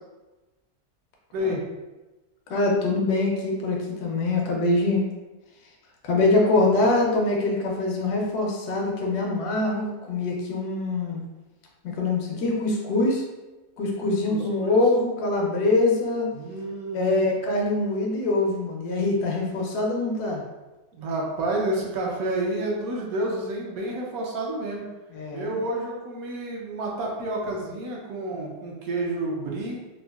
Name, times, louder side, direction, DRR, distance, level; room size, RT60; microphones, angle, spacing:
voice 1, 1.3-1.6 14.3-14.7 16.3-17.2 20.9-24.8 25.3-29.8, right 1 dB, 70° right, -2 dB, 1.0 m, -29 dB
voice 2, 2.5-5.0 6.0-11.2 11.9-13.2 13.8-16.3 16.9-20.4 25.1-25.6, left 2 dB, 75° left, -1 dB, 1.2 m, -24 dB
3.8 x 2.4 x 2.3 m, 1.1 s
omnidirectional pair, 1.7 m